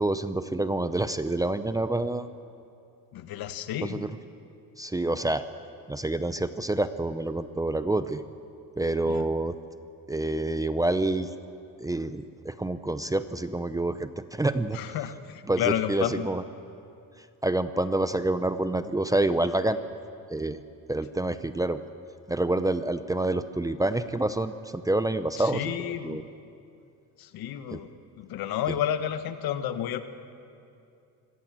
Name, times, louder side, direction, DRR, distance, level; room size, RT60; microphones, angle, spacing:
voice 1, 0.0-2.3 3.8-4.1 4.8-5.4 5.9-8.2 8.8-9.6 10.1-11.3 11.8-14.8 15.5-16.4 17.2-19.8 20.3-20.6 20.9-21.8 22.3-26.2 27.7-27.8, right 2 dB, 10° right, 11 dB, 0.6 m, -27 dB
voice 2, 3.1-4.1 9.1-9.2 14.7-16.3 25.4-26.2 27.2-27.9 28.2-30.0, left 10 dB, 70° left, 10 dB, 1.5 m, -31 dB
25.5 x 18.0 x 7.5 m, 2.5 s
cardioid pair, 125°, 37 cm